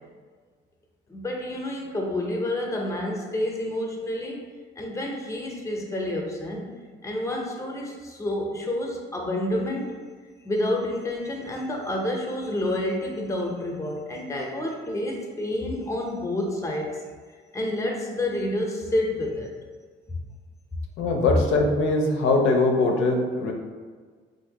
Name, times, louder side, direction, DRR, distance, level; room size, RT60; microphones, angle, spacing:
voice 1, 1.1-4.4 4.8-6.7 7.0-9.9 10.4-16.9 17.5-19.5, left 1 dB, 15° left, 0 dB, 0.6 m, -29 dB
voice 2, 21.0-23.5, left 2 dB, 80° left, 1 dB, 0.5 m, -22 dB
3.3 x 2.6 x 2.8 m, 1.5 s
cardioid pair, 90°, 20 cm